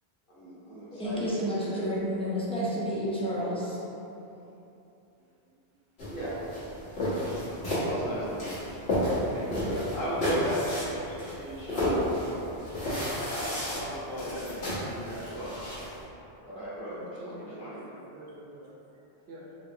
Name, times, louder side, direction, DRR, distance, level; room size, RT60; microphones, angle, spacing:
voice 1, 0.3-1.3 6.1-6.5 7.7-12.4 13.1-15.5 16.4-16.9 17.2-17.8, right 1 dB, 55° left, -10 dB, 1.3 m, -37 dB
voice 2, 0.9-3.8, equal, 5° left, -8 dB, 0.6 m, -30 dB
sound 1, 6.0-16.0, equal, 85° left, 1.5 m, -32 dB
voice 3, 16.9-19.6, right 1 dB, 80° right, -4 dB, 1.0 m, -46 dB
3.9 x 3.2 x 2.7 m, 2.9 s
omnidirectional pair, 1.0 m